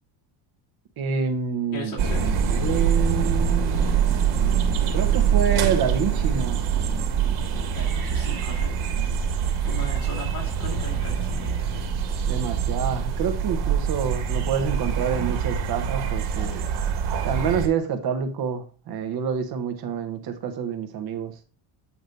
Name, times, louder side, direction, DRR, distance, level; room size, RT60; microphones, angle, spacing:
voice 1, 1.0-4.4 4.9-6.6 12.3-16.7 17.2-21.3, right 6 dB, 50° right, 8 dB, 1.0 m, -28 dB
voice 2, 1.7-2.4 7.7-8.9 9.6-11.5, left 3 dB, 40° left, -2 dB, 3.0 m, -37 dB
sound 1, 2.0-17.7, right 7 dB, 75° right, 1.7 m, -24 dB
8.2 x 3.0 x 5.1 m, 0.37 s
cardioid pair, 155°, 49 cm